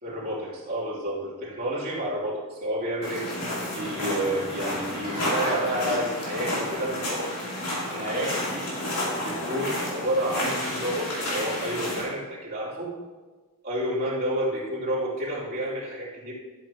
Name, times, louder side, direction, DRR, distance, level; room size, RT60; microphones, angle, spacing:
voice 1, 0.0-3.3 3.7-7.3 7.8-8.8 9.1-12.9 13.6-16.3, right 1 dB, 45° right, -8 dB, 3.3 m, -30 dB
sound 1, 3.0-12.0, left 1 dB, 75° left, 3.6 m, -31 dB
13.0 x 8.8 x 3.1 m, 1.3 s
head